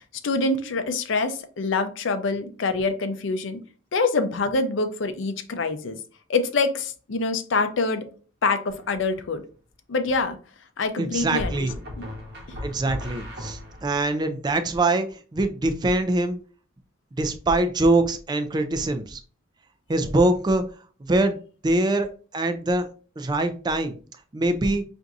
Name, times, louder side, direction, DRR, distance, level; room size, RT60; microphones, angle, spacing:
voice 1, 0.2-3.6 3.9-6.0 6.3-8.1 8.4-9.4 9.9-10.4 10.8-11.7 12.0-12.1, left 3 dB, 70° left, 7 dB, 0.5 m, -25 dB
sound 1, 8.7-9.2 11.4-14.0, left 1 dB, 55° right, 0.9 m, -36 dB
voice 2, 11.0-11.7 12.6-16.4 17.2-19.2 19.9-20.6 21.0-21.4 21.6-22.1 22.3-22.9 23.2-24.0 24.3-24.8, right 2 dB, 20° right, 8 dB, 0.3 m, -23 dB
5.7 x 2.6 x 2.5 m, 0.39 s
head